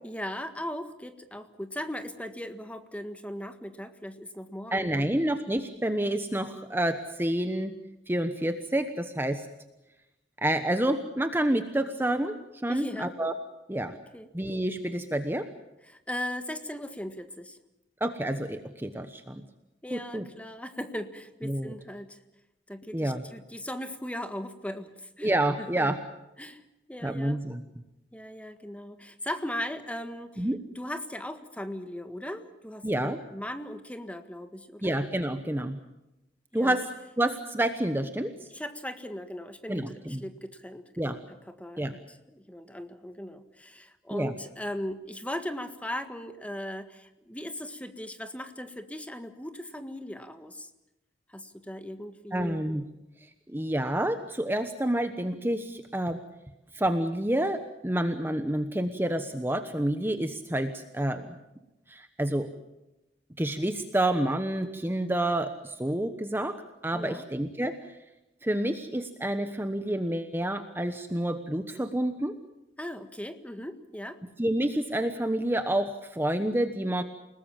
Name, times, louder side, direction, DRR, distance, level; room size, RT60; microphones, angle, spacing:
voice 1, 0.0-5.1 12.7-13.1 13.9-14.3 15.9-17.6 19.8-22.2 22.7-25.3 25.6-25.9 26.4-26.6 26.9-27.4 28.1-30.5 30.7-34.9 36.5-36.8 38.5-50.7 51.3-52.6 66.9-67.3 72.8-74.2, left 1 dB, 10° left, 8 dB, 1.7 m, -38 dB
voice 2, 4.7-7.7 8.1-9.5 10.4-12.3 12.6-13.3 13.7-13.9 14.3-15.4 18.0-19.4 19.9-20.2 21.4-21.7 22.9-23.2 25.2-26.0 27.0-27.6 30.4-30.6 32.8-33.2 34.8-35.8 36.5-36.9 37.2-38.3 39.7-40.2 41.0-41.2 41.8-41.9 44.1-44.3 52.3-52.8 53.5-56.2 56.7-61.3 61.9-62.5 63.4-67.8 68.4-72.3 74.4-77.0, right 1 dB, 15° right, 8 dB, 1.1 m, -28 dB
29.5 x 19.5 x 7.3 m, 0.95 s
head